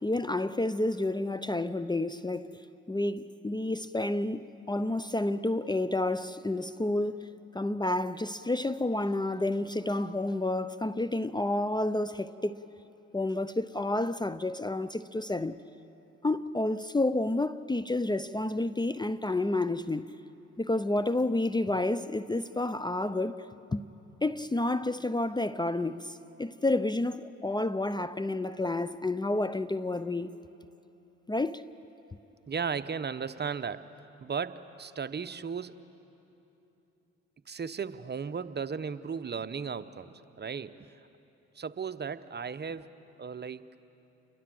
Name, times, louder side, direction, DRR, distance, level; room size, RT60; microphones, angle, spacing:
voice 1, 0.0-2.6 2.9-7.3 7.5-12.6 13.1-15.6 16.2-20.1 20.6-23.4 23.7-23.8 24.2-30.4 31.3-31.6, left 2 dB, 15° left, 0.6 m, -30 dB
voice 2, 32.5-33.9 34.2-35.8 37.5-40.9 41.5-42.9 43.2-43.7, right 6 dB, 35° right, 0.9 m, -35 dB
29.0 x 22.0 x 7.8 m
supercardioid pair, 60°, 29 cm